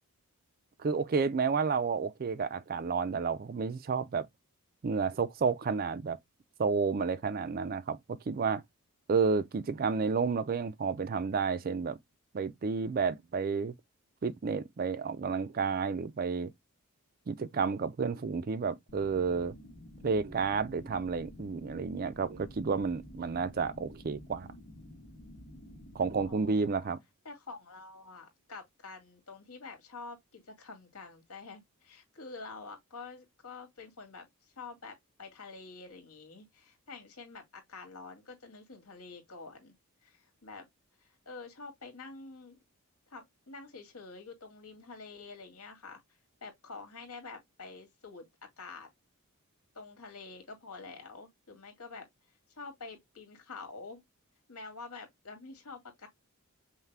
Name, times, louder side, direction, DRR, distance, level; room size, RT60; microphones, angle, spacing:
voice 1, 0.8-4.3 4.8-6.2 6.6-8.6 9.1-12.0 12.3-13.7 14.2-16.5 17.3-19.5 20.0-24.5 25.9-27.0, right 5 dB, 40° right, 0.4 m, -31 dB
sound 1, 18.9-26.3, left 1 dB, 45° left, 1.9 m, -50 dB
voice 2, 26.3-26.9 27.2-39.7 40.0-40.7 41.0-42.6 43.1-46.0 46.4-48.2 48.6-48.9 49.7-52.1 52.5-54.0 54.5-56.1, left 4 dB, 80° left, 1.9 m, -47 dB
5.6 x 2.2 x 3.3 m
head